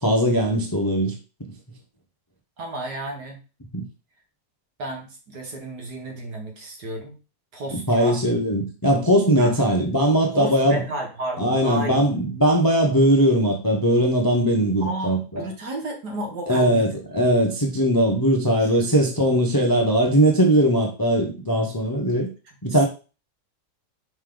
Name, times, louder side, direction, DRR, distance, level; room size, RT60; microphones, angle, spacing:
voice 1, 0.0-1.1 3.7-3.8 7.7-10.8 11.4-15.5 16.5-22.3 22.6-22.9, right 1 dB, 20° left, 2 dB, 0.5 m, -20 dB
voice 2, 2.6-3.4 4.8-7.2 7.5-8.2 9.4-9.6 10.3-12.1 14.8-16.9 18.6-18.8 19.3-19.4 22.6-22.9, right 1 dB, 65° right, 2 dB, 2.1 m, -32 dB
5.5 x 4.8 x 3.8 m, 0.33 s
omnidirectional pair, 1.9 m